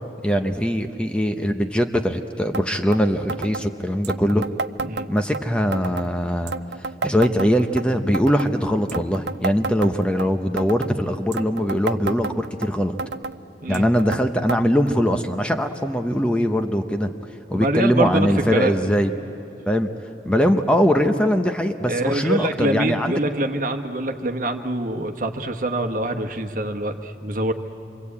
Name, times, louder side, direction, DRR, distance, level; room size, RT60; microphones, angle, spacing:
voice 1, 0.2-4.5 5.1-6.5 7.0-13.0 13.7-17.1 17.5-19.1 19.7-19.9 20.3-23.2, equal, 5° left, 6 dB, 0.8 m, -21 dB
sound 1, 2.5-2.7 2.9-3.0 3.3-3.6 4.0-5.4 5.7-6.1 6.5-7.8 8.1-8.5 8.9-10.3 10.6-10.9 11.3-12.7 13.0-13.4 13.7-14.2 14.5-14.6 14.9-15.0 15.7-15.8 16.6-16.7, right 4 dB, 75° right, 0.6 m, -30 dB
voice 2, 17.5-18.8 21.9-27.5, right 1 dB, 50° right, 5 dB, 1.3 m, -25 dB
28.0 x 24.0 x 8.5 m, 2.9 s
head